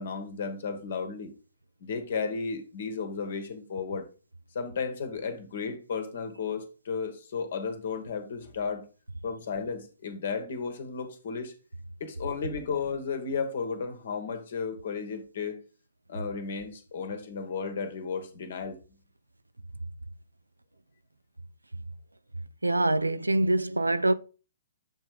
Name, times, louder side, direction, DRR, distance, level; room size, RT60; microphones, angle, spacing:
voice 1, 0.0-1.3 1.8-4.0 4.5-8.8 9.2-11.5 12.0-15.6 16.1-18.8, left 5 dB, 55° left, 1.3 m, -34 dB
voice 2, 22.6-24.1, right 2 dB, 85° right, 0.4 m, -24 dB
7.3 x 3.3 x 4.9 m
figure-of-eight pair, 120°, 0 cm